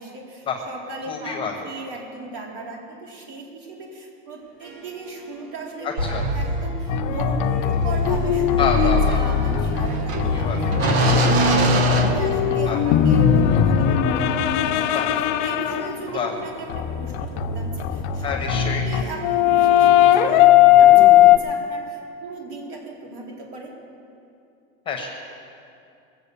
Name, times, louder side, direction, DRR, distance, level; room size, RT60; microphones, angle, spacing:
voice 1, 0.0-1.4 1.6-6.1 6.3-10.5 11.0-15.0 15.4-23.7, right 3 dB, 60° right, -2 dB, 3.8 m, -36 dB
voice 2, 1.1-1.7 5.8-6.3 8.6-9.4 10.2-10.7 12.7-12.8 14.9-15.2 16.1-16.3 18.2-18.9 24.9-25.1, left 6 dB, 15° left, 2 dB, 1.1 m, -27 dB
Harp, 4.4-19.8, right 2 dB, 35° right, 3.2 m, -43 dB
sound 1, 6.0-12.9, right 1 dB, 85° right, 1.7 m, -23 dB
sound 2, 6.9-16.0 16.7-21.4, left 10 dB, 50° left, 0.7 m, -18 dB
22.5 x 7.7 x 7.0 m, 2.6 s
supercardioid pair, 175°, 31 cm